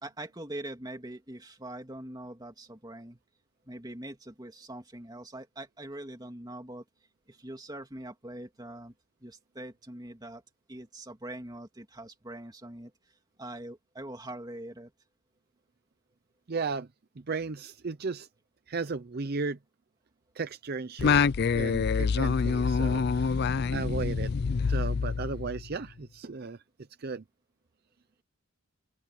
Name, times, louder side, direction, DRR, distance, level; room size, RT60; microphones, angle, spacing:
voice 1, 0.0-3.2 3.6-6.8 7.3-8.9 9.2-10.4 10.7-12.9 13.4-14.9, right 1 dB, 20° right, 2.4 m, -43 dB
voice 2, 16.5-16.9 17.3-18.3 18.7-19.6 20.3-21.2 21.5-23.4 23.7-24.3 24.7-26.6 27.0-27.2, right 4 dB, 50° right, 0.6 m, -35 dB
Singing, 21.0-25.8, left 5 dB, 50° left, 0.4 m, -26 dB
open air
head